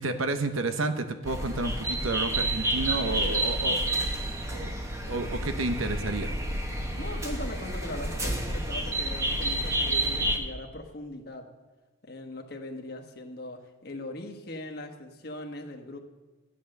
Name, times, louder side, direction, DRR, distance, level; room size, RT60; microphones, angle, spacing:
voice 1, 0.0-3.9 4.5-4.8 5.1-6.3, right 2 dB, 85° right, 8 dB, 0.9 m, -30 dB
sound 1, 1.2-10.4, right 1 dB, 15° right, 1.1 m, -29 dB
voice 2, 7.0-11.5 12.0-16.0, left 1 dB, 50° left, 3 dB, 1.3 m, -40 dB
13.0 x 9.2 x 6.6 m, 1.3 s
head